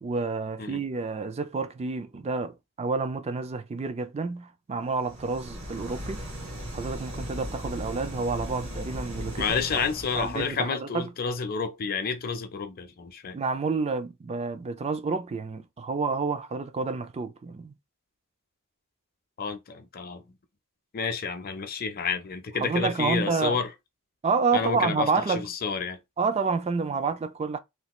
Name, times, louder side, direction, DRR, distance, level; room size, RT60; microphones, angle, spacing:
voice 1, 0.0-6.2 6.7-9.9 10.1-11.1 13.3-17.7 22.6-23.6 24.2-25.5 26.2-27.6, right 4 dB, 30° right, 0.4 m, -29 dB
sound 1, 4.9-10.6, equal, 80° right, 1.3 m, -37 dB
voice 2, 9.4-13.4 19.4-20.2 20.9-23.7 24.5-26.0, left 5 dB, 45° left, 0.6 m, -30 dB
3.2 x 2.4 x 3.0 m
head